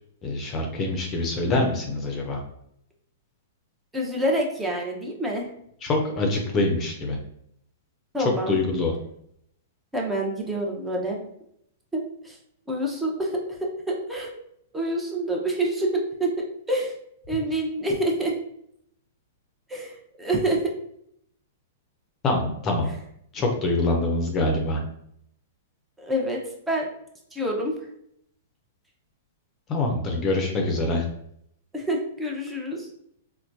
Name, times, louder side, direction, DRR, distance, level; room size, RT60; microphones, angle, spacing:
voice 1, 0.2-2.4 5.8-7.2 8.2-8.9 22.2-22.9 23.3-24.8 29.7-31.0, left 2 dB, 30° left, 2 dB, 0.7 m, -25 dB
voice 2, 3.9-5.5 8.1-8.6 9.9-11.2 11.9-12.4 12.7-13.4 14.1-14.3 14.7-16.3 16.7-16.9 17.3-18.3 19.7-20.6 26.0-26.4 26.7-26.9 27.3-27.7 31.7-32.9, right 1 dB, 10° right, -1 dB, 0.8 m, -27 dB
4.2 x 2.2 x 2.6 m, 0.71 s
figure-of-eight pair, 110°, 0 cm